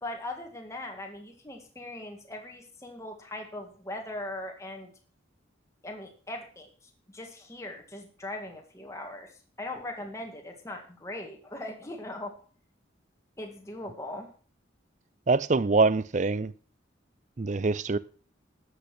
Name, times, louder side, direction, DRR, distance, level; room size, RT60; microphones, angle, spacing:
voice 1, 0.0-4.9 5.8-12.3 13.4-14.3, left 1 dB, 15° left, 1.9 m, -40 dB
voice 2, 15.3-16.5 17.4-18.0, right 3 dB, 35° right, 0.5 m, -24 dB
12.5 x 8.2 x 6.1 m
head